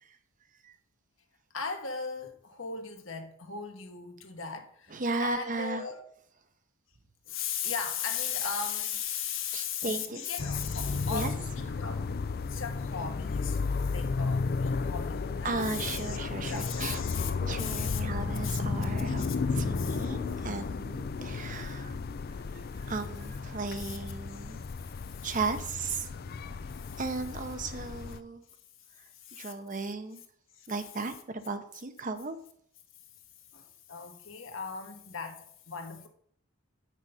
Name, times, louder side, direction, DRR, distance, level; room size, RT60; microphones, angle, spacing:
voice 1, 1.5-6.0 7.2-12.1 12.5-17.3 17.6-18.0 18.4-18.6 19.1-19.4 19.8-20.1 23.8-24.0 24.3-24.6 25.0-25.3 26.7-27.0 29.1-29.5 30.5-30.7 33.5-36.1, left 7 dB, 65° left, 1.4 m, -37 dB
voice 2, 4.9-5.8 9.5-10.2 11.1-11.3 15.4-17.0 17.4-21.9 22.9-24.6 25.2-26.1 27.0-28.4 29.3-30.2 30.7-32.4, right 3 dB, 40° right, 0.8 m, -35 dB
sound 1, 10.4-28.2, left 4 dB, 45° left, 0.4 m, -33 dB
8.0 x 6.2 x 5.7 m
head